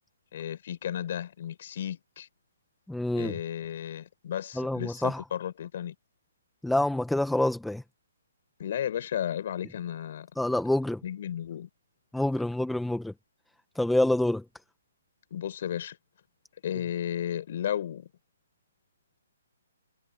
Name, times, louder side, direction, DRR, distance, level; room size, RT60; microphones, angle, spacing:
voice 1, 0.3-2.3 3.1-5.9 8.6-10.3 11.0-11.7 15.3-16.0 16.6-18.1, left 10 dB, 50° left, 4.9 m, -34 dB
voice 2, 2.9-3.4 4.6-5.2 6.6-7.8 10.4-11.0 12.1-13.1 13.7-14.4, left 1 dB, ahead, 1.6 m, -27 dB
hypercardioid pair, 145°, 0 cm